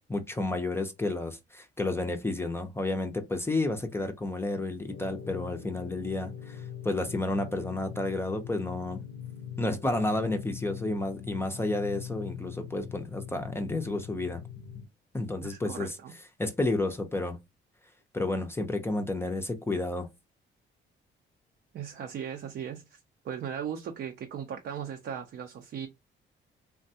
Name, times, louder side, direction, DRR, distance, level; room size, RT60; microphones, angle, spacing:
voice 1, 0.1-9.0 9.6-14.4 15.1-16.0 16.4-17.4 18.1-20.1, left 2 dB, 10° left, 0.5 m, -31 dB
sound 1, 4.9-14.9, left 9 dB, 70° left, 0.6 m, -42 dB
voice 2, 15.4-16.1 21.7-23.0 23.2-25.9, right 8 dB, 60° right, 0.5 m, -37 dB
3.4 x 2.2 x 2.7 m
cardioid pair, 90°, 20 cm